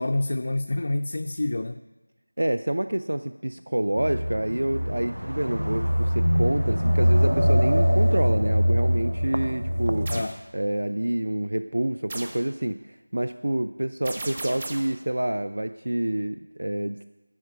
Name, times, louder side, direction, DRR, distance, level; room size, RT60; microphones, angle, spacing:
voice 1, 0.0-1.8 10.1-10.4, left 2 dB, 40° left, 6 dB, 0.3 m, -27 dB
voice 2, 2.4-10.1 10.5-17.1, right 1 dB, 60° right, 10 dB, 0.4 m, -27 dB
sound 1, 4.0-10.2, equal, 90° right, 0.7 m, -23 dB
sound 2, 10.0-10.4 12.1-12.5 14.0-15.0, right 2 dB, 25° right, 0.7 m, -36 dB
11.0 x 4.7 x 7.9 m, 1.1 s
figure-of-eight pair, 170°, 0 cm